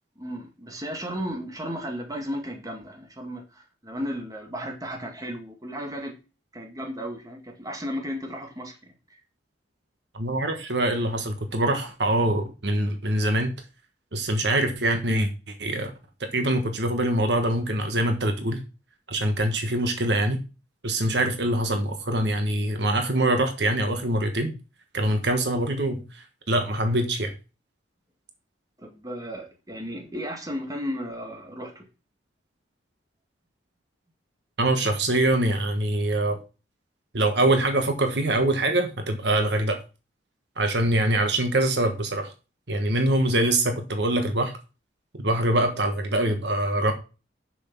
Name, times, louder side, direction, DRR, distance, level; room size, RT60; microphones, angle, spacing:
voice 1, 0.2-6.1 6.5-8.8 28.8-31.8, equal, 20° right, 2 dB, 1.7 m, -34 dB
voice 2, 10.1-13.5 14.1-15.9 16.2-18.6 19.1-20.4 20.8-24.5 24.9-26.0 26.5-27.3 34.6-36.4 37.1-39.8 40.6-42.3 42.7-44.5 45.1-46.9, right 1 dB, 65° right, 6 dB, 1.3 m, -24 dB
7.0 x 6.3 x 6.0 m, 0.32 s
head